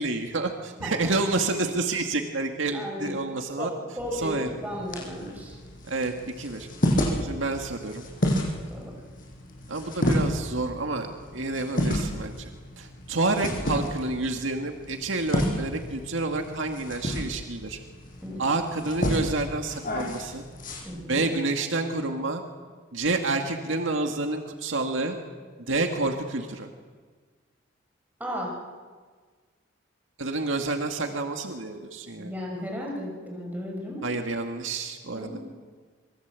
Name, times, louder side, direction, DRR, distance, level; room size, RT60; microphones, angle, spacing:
voice 1, 0.0-3.7 4.1-4.5 5.9-6.7 7.2-8.0 9.7-12.5 12.8-17.8 18.4-20.4 21.1-22.4 22.9-25.2 25.7-26.7 30.2-32.3 34.0-35.4, right 2 dB, 85° right, 4 dB, 2.0 m, -29 dB
voice 2, 2.7-3.2 3.6-3.7 4.0-5.6 8.7-8.9 18.2-18.4 20.8-21.3 28.2-28.6 32.2-34.0 35.1-35.4, equal, 10° right, -2 dB, 5.8 m, -34 dB
sound 1, 4.0-20.8, equal, 45° left, 6.9 m, -31 dB
26.5 x 23.0 x 8.3 m, 1.5 s
head